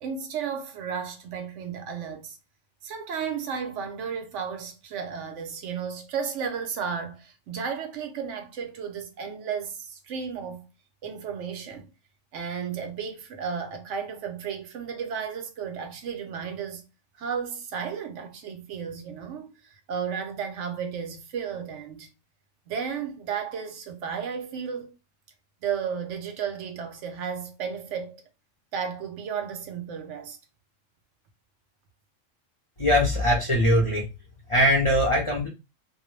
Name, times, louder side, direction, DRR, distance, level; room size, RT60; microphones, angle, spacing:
voice 1, 0.0-2.4 2.8-10.7 11.0-11.9 12.3-16.8 17.2-19.5 19.9-22.1 22.7-24.9 25.6-28.2 28.7-30.4, right 7 dB, 75° right, 0.9 m, -33 dB
voice 2, 32.8-34.1 34.5-35.5, equal, 35° left, 0.5 m, -21 dB
2.3 x 2.2 x 3.0 m
omnidirectional pair, 1.3 m